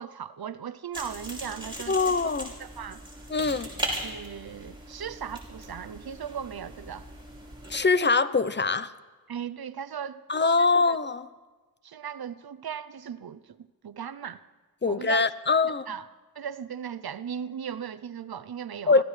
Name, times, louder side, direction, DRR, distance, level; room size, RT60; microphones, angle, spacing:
voice 1, 0.0-2.1 2.6-3.0 4.0-7.1 9.3-10.2 10.6-11.0 11.8-14.4 14.9-15.3 15.6-16.1 16.4-19.0, right 8 dB, 75° right, 0.6 m, -37 dB
sound 1, 0.9-7.8, right 1 dB, 15° right, 5.4 m, -39 dB
voice 2, 1.9-2.5 3.3-3.7 7.7-8.9 10.3-11.3 14.8-15.9 18.9-19.0, left 4 dB, 30° left, 0.6 m, -23 dB
26.0 x 15.0 x 3.2 m
wide cardioid pair, 40°, 38 cm